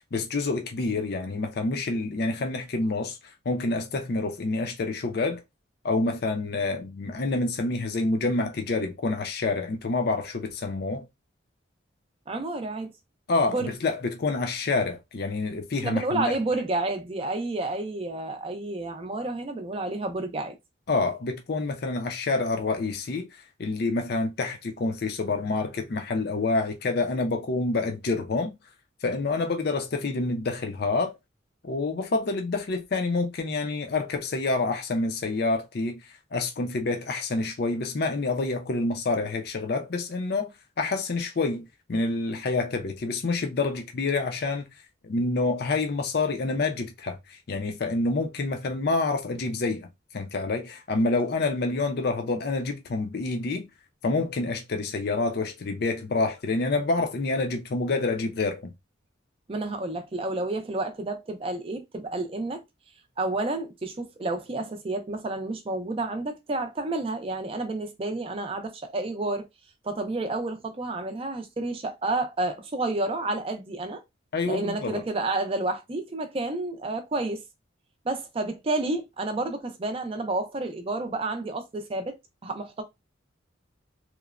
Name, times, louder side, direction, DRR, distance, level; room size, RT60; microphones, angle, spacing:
voice 1, 0.1-3.2 3.5-5.4 5.8-11.0 13.3-16.3 20.9-28.5 29.0-31.1 31.6-36.0 36.3-40.5 40.8-44.7 45.0-49.9 50.1-53.7 54.0-58.7 74.3-75.0, left 3 dB, 50° left, 0.5 m, -27 dB
voice 2, 12.3-12.9 13.5-13.7 15.8-20.5 59.5-62.6 63.2-69.5 69.8-74.0 74.4-77.4 78.0-82.2 82.4-82.8, right 2 dB, 30° right, 0.4 m, -30 dB
3.0 x 2.1 x 2.3 m
head